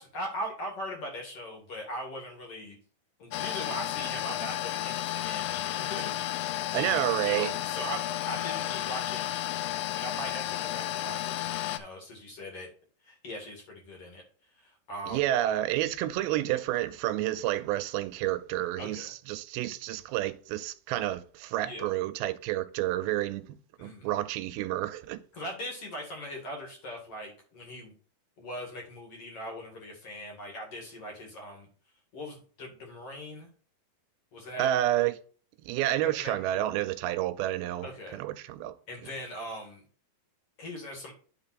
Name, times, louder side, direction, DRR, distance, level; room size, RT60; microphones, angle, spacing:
voice 1, 0.0-2.7 3.2-9.2 9.9-12.7 13.0-14.2 14.6-15.5 18.8-19.1 21.6-21.9 23.8-24.0 25.3-27.9 28.4-31.7 32.1-33.5 34.3-34.7 36.2-36.8 37.8-38.2 38.9-39.8 40.6-41.1, equal, 45° left, 2.5 m, -40 dB
sound 1, 3.3-11.8, left 14 dB, 80° left, 2.0 m, -32 dB
voice 2, 6.7-7.5 15.1-25.2 34.6-35.1 35.7-37.9 38.1-38.7, right 14 dB, 90° right, 2.5 m, -30 dB
10.5 x 3.9 x 4.2 m
omnidirectional pair, 4.2 m